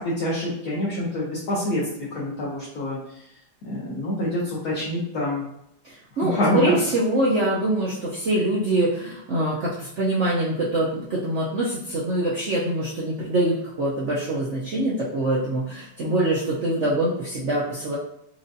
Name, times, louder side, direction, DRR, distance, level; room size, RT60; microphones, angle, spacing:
voice 1, 0.0-1.8 2.1-3.0 3.6-5.4 6.3-6.9, left 1 dB, 60° left, -7 dB, 1.3 m, -26 dB
voice 2, 5.8-18.0, right 1 dB, 65° right, -6 dB, 0.7 m, -24 dB
4.6 x 2.5 x 2.6 m, 0.79 s
omnidirectional pair, 2.0 m